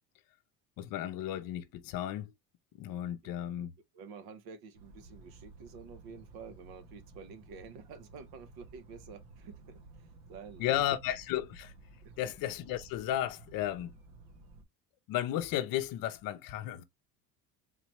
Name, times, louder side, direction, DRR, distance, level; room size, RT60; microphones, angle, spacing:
voice 1, 0.8-2.3 2.8-3.7 10.6-11.7 12.2-13.9 15.1-16.8, left 12 dB, 55° left, 0.7 m, -34 dB
voice 2, 3.2-3.7 3.9-10.7 12.0-12.3, right 5 dB, 60° right, 0.9 m, -50 dB
sound 1, 4.7-14.6, right 3 dB, 85° right, 1.3 m, -54 dB
4.0 x 3.0 x 3.0 m
cardioid pair, 140°, 41 cm